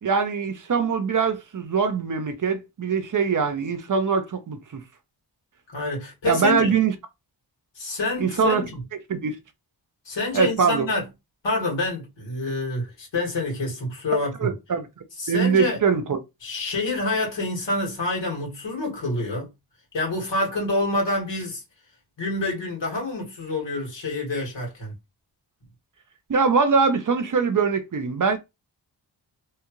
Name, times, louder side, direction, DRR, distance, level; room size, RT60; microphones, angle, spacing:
voice 1, 0.0-4.8 6.3-6.9 8.2-8.6 9.1-9.4 10.3-10.9 14.4-14.9 15.3-16.2 26.3-28.4, right 5 dB, 45° right, 0.6 m, -22 dB
voice 2, 5.7-6.7 7.8-8.8 10.1-11.0 11.4-14.5 15.2-15.8 16.4-19.5 19.9-21.6 22.2-24.9, left 2 dB, 80° left, 1.8 m, -27 dB
3.1 x 2.4 x 3.0 m
wide cardioid pair, 115°, 42 cm